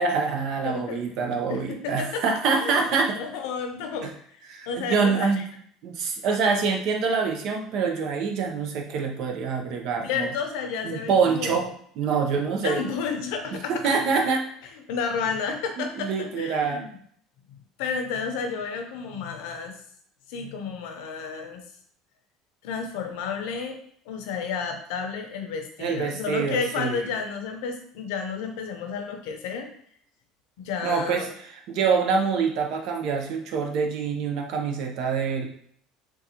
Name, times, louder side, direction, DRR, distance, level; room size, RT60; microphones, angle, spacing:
voice 1, 0.0-3.2 4.0-4.1 4.5-5.4 5.8-10.3 10.8-11.7 12.0-12.8 13.7-14.4 15.8-16.8 25.8-27.1 30.8-31.3 31.7-35.5, right 5 dB, 60° right, 3 dB, 0.7 m, -25 dB
voice 2, 0.6-1.0 1.5-2.2 2.6-2.8 3.2-4.4 4.7-5.4 10.0-11.7 12.6-13.8 14.7-17.0 17.8-19.7 20.3-21.6 22.6-23.8 24.1-29.7 30.6-31.3, left 5 dB, 80° left, 5 dB, 0.6 m, -31 dB
3.8 x 2.3 x 2.9 m, 0.63 s
cardioid pair, 135°, 0 cm